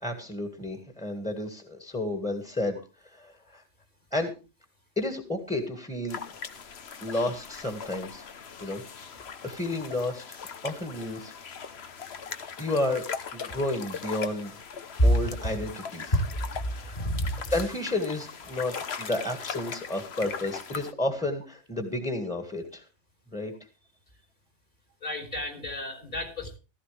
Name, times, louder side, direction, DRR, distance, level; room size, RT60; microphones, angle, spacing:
voice 1, 0.0-2.8 3.1-3.6 4.1-4.3 4.9-6.2 7.0-8.2 8.6-8.8 9.1-11.3 12.6-13.1 13.3-14.6 15.0-16.1 16.8-17.0 17.5-22.8 23.3-23.5, left 2 dB, 5° left, 5 dB, 1.8 m, -31 dB
sound 1, 6.1-20.9, left 6 dB, 60° left, 1.2 m, -40 dB
voice 2, 15.0-15.3 17.0-17.3 25.0-26.6, equal, 40° left, 3 dB, 3.4 m, -27 dB
15.5 x 14.0 x 3.4 m, 0.31 s
omnidirectional pair, 1.2 m